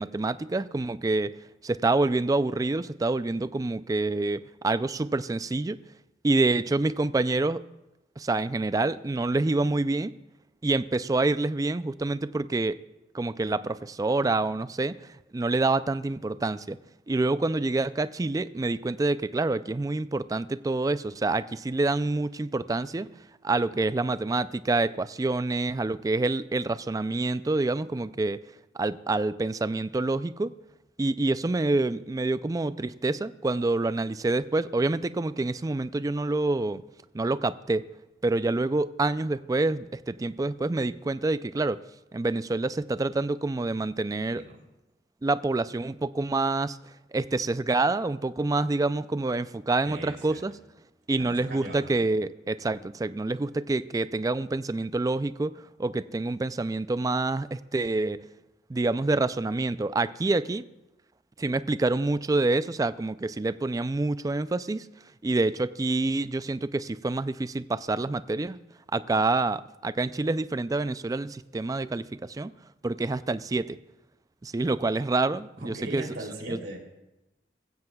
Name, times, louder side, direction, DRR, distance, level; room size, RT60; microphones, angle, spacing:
voice 1, 0.0-1.3 1.6-5.8 6.2-7.6 8.2-10.2 10.6-12.8 13.1-16.8 17.1-23.1 23.4-28.4 28.7-30.5 31.0-36.8 37.1-37.9 38.2-41.8 42.1-44.5 45.2-46.8 47.1-50.5 51.1-58.2 58.7-60.7 61.4-64.9 65.2-68.6 68.9-72.5 72.8-73.8 74.4-76.1 76.5-76.6, right 2 dB, 20° right, 14 dB, 0.3 m, -27 dB
voice 2, 49.8-50.5 51.3-52.0 75.6-76.8, right 1 dB, 70° right, 0 dB, 3.1 m, -39 dB
22.0 x 15.5 x 2.3 m, 0.96 s
head